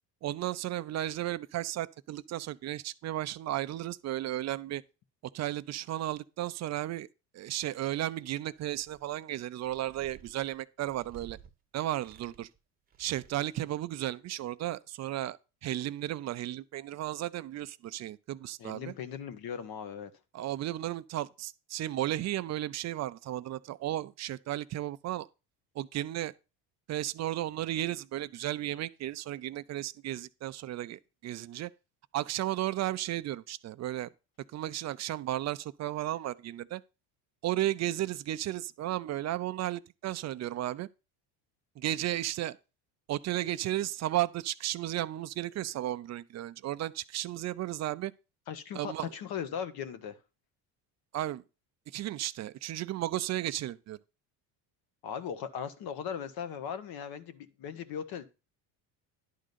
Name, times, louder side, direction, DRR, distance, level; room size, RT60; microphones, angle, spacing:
voice 1, 0.2-4.8 5.3-7.1 7.3-11.4 11.7-12.5 13.0-18.9 20.3-25.3 25.7-26.3 26.9-31.7 32.1-34.1 34.5-36.8 37.4-40.9 41.8-42.6 43.1-48.1 48.7-49.1 51.1-51.4 51.9-54.0, right 14 dB, 40° right, 0.5 m, -34 dB
sound 1, 8.6-9.2 9.6-11.5 11.9-12.6 12.9-13.6, right 8 dB, 20° right, 0.9 m, -55 dB
voice 2, 18.6-20.1 48.5-50.2 55.0-58.3, left 8 dB, 60° left, 1.3 m, -38 dB
11.0 x 3.8 x 6.7 m
cardioid pair, 125°, 43 cm